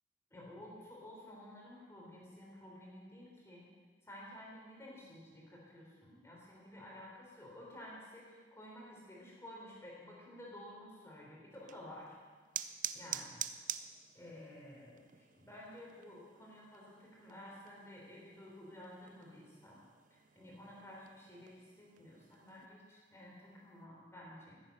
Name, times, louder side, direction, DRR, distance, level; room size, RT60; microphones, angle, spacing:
voice 1, 0.3-3.7 4.0-12.2 12.9-13.4 14.1-19.8 20.1-24.6, left 1 dB, 15° left, -4 dB, 4.1 m, -52 dB
sound 1, 11.5-22.7, right 11 dB, 45° right, 0.5 m, -48 dB
16.0 x 9.0 x 6.5 m, 1.5 s
head